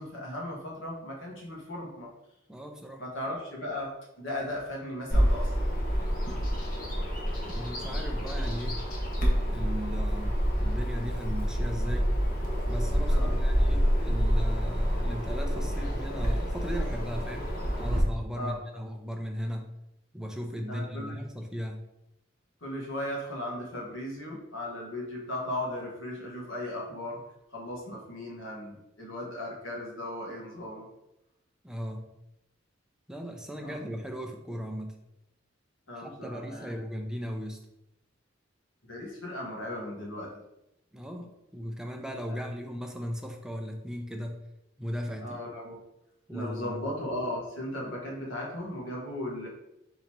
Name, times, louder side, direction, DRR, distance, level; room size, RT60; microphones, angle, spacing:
voice 1, 0.0-2.1 3.0-5.5 13.0-13.4 18.3-18.6 20.7-21.2 22.6-30.9 33.6-33.9 35.9-36.8 38.9-40.4 42.3-42.4 45.2-45.8 46.3-49.5, left 1 dB, 90° left, -2 dB, 1.4 m, -37 dB
voice 2, 2.5-3.0 7.5-8.8 9.5-12.1 12.7-17.5 17.8-19.7 20.1-21.8 31.6-32.1 33.1-35.0 36.0-37.6 40.9-44.4 44.8-45.4 46.3-46.8, equal, 5° right, 3 dB, 0.5 m, -37 dB
Bird vocalization bird call bird song, 5.1-18.0, equal, 45° left, 1.0 m, -28 dB
3.8 x 2.9 x 4.6 m, 0.87 s
head